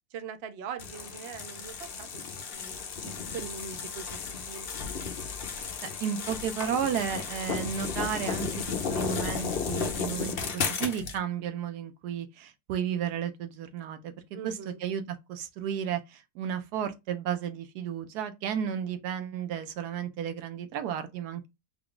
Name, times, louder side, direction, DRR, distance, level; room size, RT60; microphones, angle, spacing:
voice 1, 0.1-2.2 2.5-4.7 14.3-14.8, right 7 dB, 60° right, 0.6 m, -42 dB
sound 1, 0.8-11.2, left 6 dB, 55° left, 0.7 m, -34 dB
voice 2, 5.8-14.1 14.4-21.5, right 8 dB, 80° right, 1.2 m, -33 dB
3.5 x 2.3 x 3.6 m
omnidirectional pair, 1.7 m